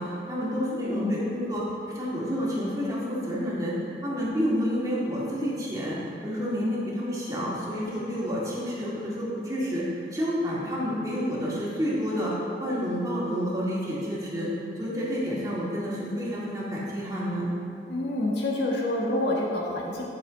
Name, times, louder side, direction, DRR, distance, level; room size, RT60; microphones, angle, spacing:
voice 1, 0.0-1.6 1.9-3.7 4.0-9.8 10.1-12.3 12.6-14.5 14.8-17.5, equal, 20° right, -7 dB, 2.0 m, -29 dB
voice 2, 0.7-1.2 17.9-20.0, left 1 dB, 75° left, -3 dB, 1.6 m, -27 dB
11.0 x 6.7 x 4.0 m, 2.7 s
head